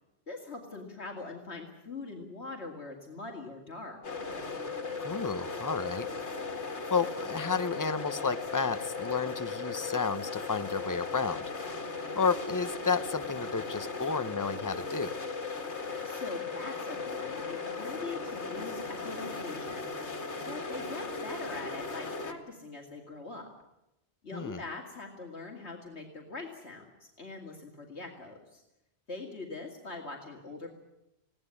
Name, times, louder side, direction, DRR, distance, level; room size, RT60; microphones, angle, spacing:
voice 1, 0.3-4.0 16.0-20.1 20.5-23.5 24.2-28.6 29.1-30.7, left 3 dB, 70° left, 1 dB, 2.7 m, -42 dB
sound 1, 4.0-22.3, left 4 dB, 90° left, 2.4 m, -37 dB
voice 2, 5.0-6.1 6.9-11.4 12.1-15.1 24.3-24.6, left 5 dB, 20° left, 12 dB, 0.8 m, -31 dB
21.0 x 17.0 x 9.9 m, 0.89 s
omnidirectional pair, 1.1 m